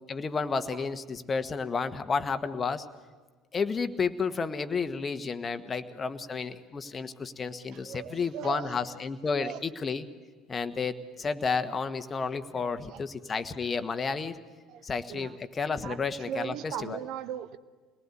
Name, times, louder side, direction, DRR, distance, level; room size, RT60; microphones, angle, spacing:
voice 1, 0.1-2.8 3.5-10.0 10.5-14.4 14.8-16.5 16.8-17.0, left 5 dB, 30° left, 9 dB, 1.4 m, -31 dB
voice 2, 7.7-9.0 9.4-9.6 12.5-13.1 14.7-15.4 15.8-17.6, right 9 dB, 60° right, 14 dB, 1.1 m, -39 dB
26.0 x 19.0 x 9.8 m, 1.4 s
hypercardioid pair, 60°, 0 cm